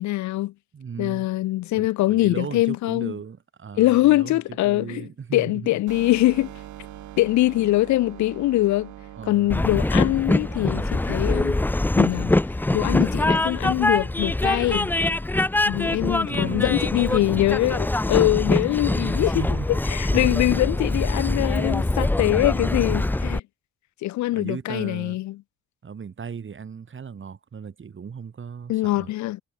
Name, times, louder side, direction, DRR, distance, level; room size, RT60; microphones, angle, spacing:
voice 1, 0.0-0.5 1.0-3.1 3.8-6.5 7.2-8.9 9.3-11.6 12.0-12.3 12.7-14.9 15.6-19.4 19.9-23.4 24.0-25.3 28.7-29.4, left 17 dB, 70° left, 0.5 m, -23 dB
voice 2, 0.7-1.3 1.7-5.7 9.1-9.6 16.2-17.6 19.0-19.7 20.1-20.8 24.3-25.2 25.8-29.1, right 6 dB, 40° right, 3.0 m, -36 dB
sound 1, 5.9-10.9, right 13 dB, 75° right, 2.2 m, -42 dB
Train, 9.5-23.4, left 2 dB, 5° left, 0.5 m, -23 dB
cardioid pair, 90°, 30 cm